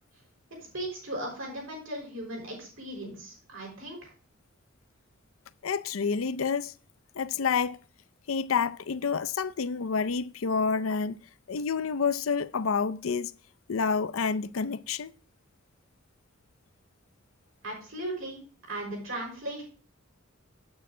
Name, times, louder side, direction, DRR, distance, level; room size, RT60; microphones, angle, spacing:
voice 1, 0.7-4.1 17.6-18.4 18.7-19.6, right 1 dB, 80° right, 5.6 m, -37 dB
voice 2, 5.6-6.7 7.2-7.8 8.3-11.2 11.5-13.3 13.7-15.1, left 5 dB, 80° left, 0.5 m, -28 dB
9.0 x 8.9 x 3.7 m
head